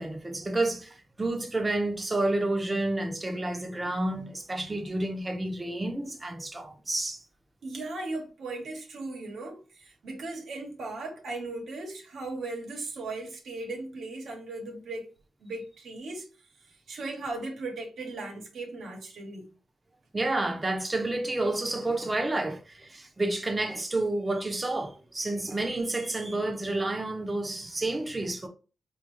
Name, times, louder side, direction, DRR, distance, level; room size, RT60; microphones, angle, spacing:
voice 1, 0.0-7.2 20.1-28.5, right 2 dB, 20° right, 0.8 m, -30 dB
voice 2, 7.6-15.1 15.4-16.3 16.7-19.5, right 2 dB, 80° right, 1.1 m, -37 dB
4.2 x 2.5 x 3.1 m
wide cardioid pair, 120°, 0 cm